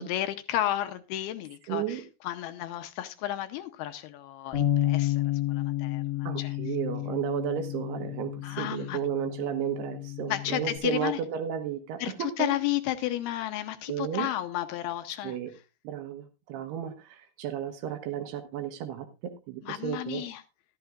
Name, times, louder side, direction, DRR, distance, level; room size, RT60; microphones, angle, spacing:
voice 1, 0.0-5.2 5.5-6.5 8.4-9.0 10.3-11.2 12.0-15.4 19.6-20.4, left 13 dB, 80° left, 8 dB, 2.4 m, -32 dB
voice 2, 1.7-2.0 6.2-12.6 13.9-14.3 15.2-15.5 15.8-20.2, right 10 dB, 70° right, 8 dB, 2.9 m, -33 dB
Bass guitar, 4.5-10.8, left 14 dB, 65° left, 1.4 m, -31 dB
14.0 x 12.5 x 2.4 m, 0.28 s
omnidirectional pair, 5.1 m